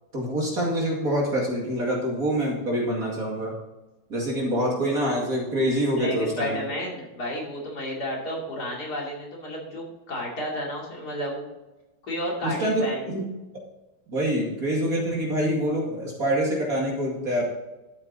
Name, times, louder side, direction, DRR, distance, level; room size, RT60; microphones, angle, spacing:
voice 1, 0.1-3.5 4.1-6.6 12.4-13.2 14.1-17.4, equal, 45° right, -2 dB, 2.7 m, -26 dB
voice 2, 5.9-11.4 12.1-13.0, equal, 50° left, -2 dB, 3.2 m, -31 dB
12.5 x 7.3 x 4.0 m, 1.1 s
omnidirectional pair, 2.2 m